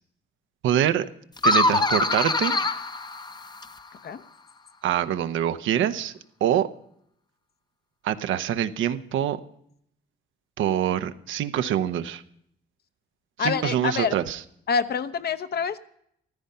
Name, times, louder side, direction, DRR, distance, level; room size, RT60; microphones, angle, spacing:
voice 1, 0.6-1.1 1.4-2.6 4.8-6.1 6.4-6.7 8.0-9.4 10.6-12.2 13.4-14.4, right 10 dB, 80° right, 10 dB, 0.8 m, -25 dB
sound 1, 1.4-3.9, left 2 dB, 20° left, 0.7 m, -24 dB
voice 2, 13.4-14.1 14.7-15.8, left 6 dB, 55° left, 12 dB, 0.9 m, -26 dB
14.5 x 13.5 x 5.6 m, 0.71 s
cardioid pair, 90°, 20 cm